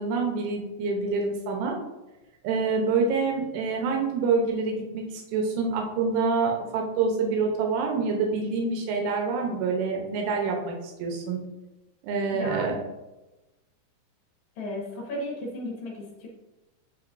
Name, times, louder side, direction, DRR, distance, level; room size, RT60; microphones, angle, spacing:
voice 1, 0.0-1.7 2.4-5.0 5.3-11.4 12.0-12.8, right 4 dB, 85° right, 1 dB, 3.3 m, -26 dB
voice 2, 12.3-12.7 14.6-16.3, left 1 dB, 70° left, -3 dB, 1.8 m, -34 dB
9.1 x 5.2 x 2.6 m, 1.0 s
omnidirectional pair, 5.3 m